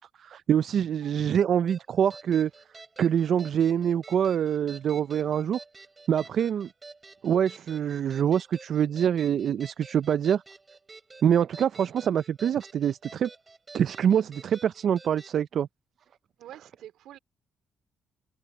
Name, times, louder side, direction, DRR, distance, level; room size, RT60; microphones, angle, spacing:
voice 1, 0.0-2.5 3.0-5.6 6.1-6.7 7.2-10.4 11.2-13.3 13.7-15.7, right 9 dB, 60° right, 0.4 m, -25 dB
sound 1, 1.7-15.4, right 3 dB, 25° right, 7.9 m, -49 dB
voice 2, 16.4-17.2, right 12 dB, 85° right, 3.0 m, -47 dB
cardioid pair, 90°, 0 cm